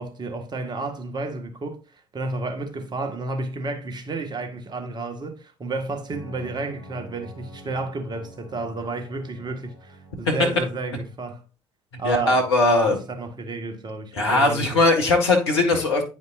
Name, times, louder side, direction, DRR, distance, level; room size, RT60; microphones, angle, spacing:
voice 1, 0.0-11.4 12.0-12.4 12.9-14.8 15.7-15.8, right 3 dB, 30° right, 1.6 m, -31 dB
sound 1, 6.1-11.1, equal, 35° left, 3.7 m, -46 dB
voice 2, 12.0-13.0 14.1-16.0, left 2 dB, 75° left, 1.8 m, -19 dB
9.6 x 5.3 x 2.5 m
figure-of-eight pair, 55°, 14 cm